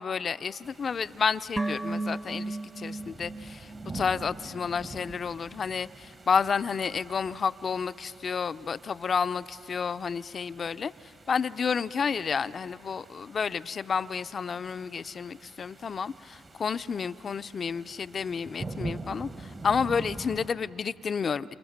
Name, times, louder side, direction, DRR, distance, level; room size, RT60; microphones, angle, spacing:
voice 1, 0.0-10.9 11.3-21.5, left 6 dB, 50° left, 13 dB, 0.5 m, -30 dB
sound 1, 0.6-20.5, right 3 dB, 40° right, 1.4 m, -45 dB
sound 2, 1.6-4.9 5.1-5.2, right 2 dB, 10° right, 0.6 m, -35 dB
28.0 x 27.0 x 7.3 m, 2.9 s
supercardioid pair, 55°, 0 cm